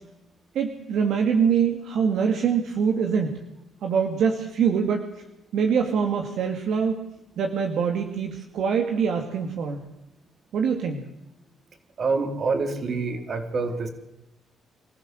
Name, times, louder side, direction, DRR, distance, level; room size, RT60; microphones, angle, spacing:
voice 1, 0.5-3.4 3.8-5.0 5.5-7.0 7.4-9.8 10.5-11.0, right 6 dB, 75° right, 3 dB, 2.4 m, -24 dB
voice 2, 12.0-13.9, right 4 dB, 50° right, 6 dB, 3.9 m, -26 dB
26.0 x 15.0 x 7.9 m, 0.87 s
cardioid pair, 90°, 0 cm